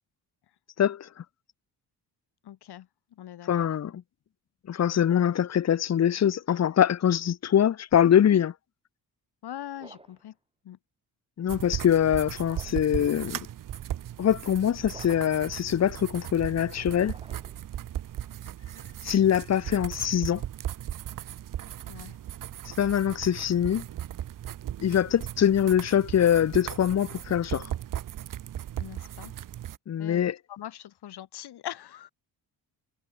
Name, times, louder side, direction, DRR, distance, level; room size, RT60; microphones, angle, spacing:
voice 1, 0.8-1.1 3.5-4.0 4.7-8.5 11.4-13.4 14.2-17.1 19.0-20.4 22.7-23.8 24.8-27.7 29.9-30.4, left 9 dB, 40° left, 0.9 m, -23 dB
voice 2, 2.4-3.7 9.4-10.4 10.6-10.8 21.9-22.2 24.8-25.0 28.8-29.4 30.0-32.1, left 11 dB, 70° left, 2.7 m, -42 dB
sound 1, 9.7-10.3 12.3-12.9 14.9-15.5 17.0-17.7, right 2 dB, 15° right, 5.7 m, -51 dB
sound 2, 11.5-29.8, right 11 dB, 50° right, 0.9 m, -37 dB
cardioid pair, 130°, 40 cm